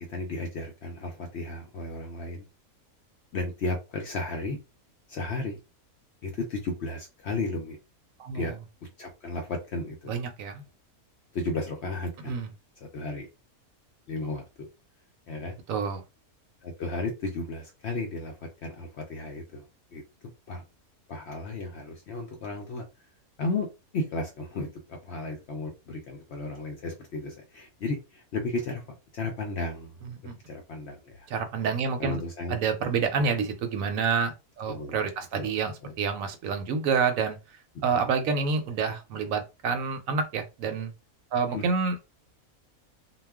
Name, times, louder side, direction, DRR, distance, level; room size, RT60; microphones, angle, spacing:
voice 1, 0.0-2.4 3.3-4.6 5.1-5.6 6.2-7.8 8.3-8.5 9.0-10.1 11.3-12.4 12.9-13.3 14.1-14.7 15.3-15.6 16.6-19.7 19.9-20.0 20.5-20.6 21.1-22.8 23.4-23.7 23.9-29.9 30.5-31.3 32.0-32.6 33.2-33.3 34.7-35.0 35.3-35.9 37.9-38.1 41.5-41.6, left 2 dB, 65° left, 0.7 m, -34 dB
voice 2, 8.2-8.6 10.1-10.6 12.2-12.5 15.7-16.0 30.0-30.4 31.3-32.2 32.5-40.9 41.3-42.1, right 5 dB, 70° right, 1.0 m, -28 dB
2.3 x 2.2 x 3.4 m
omnidirectional pair, 1.6 m